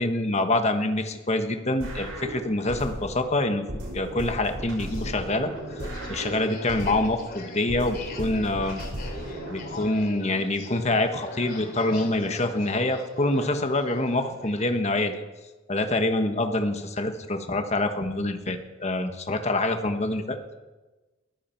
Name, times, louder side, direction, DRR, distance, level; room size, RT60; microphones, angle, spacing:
voice 1, 0.0-5.5 6.1-8.8 9.5-15.2 15.7-20.4, left 2 dB, 35° left, 6 dB, 1.4 m, -26 dB
sound 1, 1.8-3.2 3.7-7.2 7.7-9.8, right 1 dB, 85° right, 6.2 m, -35 dB
sound 2, 4.9-14.7, left 2 dB, 50° left, 3.1 m, -41 dB
21.5 x 14.5 x 4.6 m, 1.2 s
head